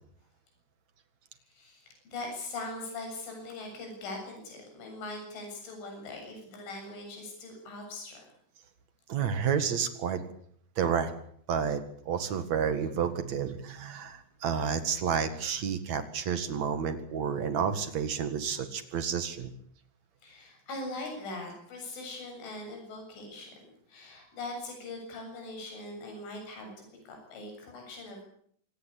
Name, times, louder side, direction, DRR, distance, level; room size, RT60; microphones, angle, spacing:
voice 1, 1.5-8.3 20.2-23.6 23.9-28.3, left 2 dB, 70° left, 3 dB, 9.9 m, -41 dB
voice 2, 9.1-10.2 10.8-11.1 11.5-11.8 12.1-19.5, right 7 dB, 55° right, 10 dB, 2.2 m, -30 dB
26.5 x 18.0 x 8.5 m, 0.63 s
omnidirectional pair, 5.7 m